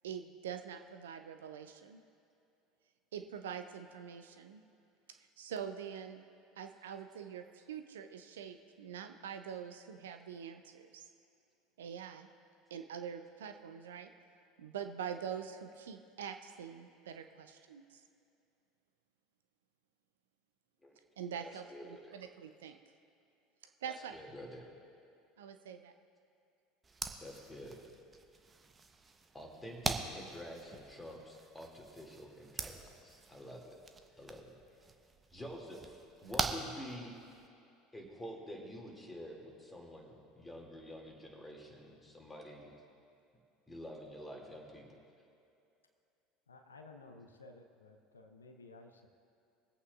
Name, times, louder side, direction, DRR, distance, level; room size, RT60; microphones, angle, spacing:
voice 1, 0.0-2.0 3.1-4.6 5.1-6.2 6.6-11.0 11.8-12.3 12.7-14.1 14.6-18.0 21.2-22.8 23.8-24.2 25.4-25.9, right 8 dB, 75° right, 7 dB, 0.5 m, -44 dB
voice 2, 21.4-22.2 23.9-24.7 27.2-27.8 29.3-33.8 34.2-34.5 35.3-36.0 36.2-37.2 37.9-42.7 43.7-45.0, equal, 10° left, -1 dB, 2.3 m, -48 dB
sound 1, 26.8-37.5, right 4 dB, 20° right, 0.8 m, -43 dB
voice 3, 46.5-49.1, left 3 dB, 85° left, 5 dB, 0.7 m, -55 dB
25.0 x 8.4 x 2.4 m, 2.6 s
figure-of-eight pair, 70°, 0 cm